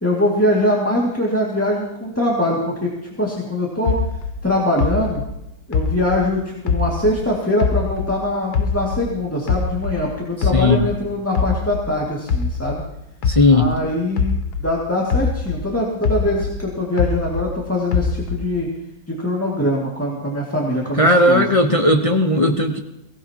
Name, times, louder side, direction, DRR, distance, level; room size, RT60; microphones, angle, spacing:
voice 1, 0.0-2.9 3.2-4.0 4.4-5.2 5.7-12.8 13.5-18.7 19.1-21.5, left 1 dB, 5° left, -4 dB, 2.0 m, -22 dB
sound 1, 3.9-7.3 7.6-10.1 10.4-14.8 15.1-17.6 17.9-18.6, left 5 dB, 60° left, 1.3 m, -23 dB
voice 2, 13.3-13.7 21.0-22.8, left 1 dB, 30° left, 3 dB, 0.6 m, -16 dB
22.5 x 17.5 x 3.0 m, 0.85 s
omnidirectional pair, 2.2 m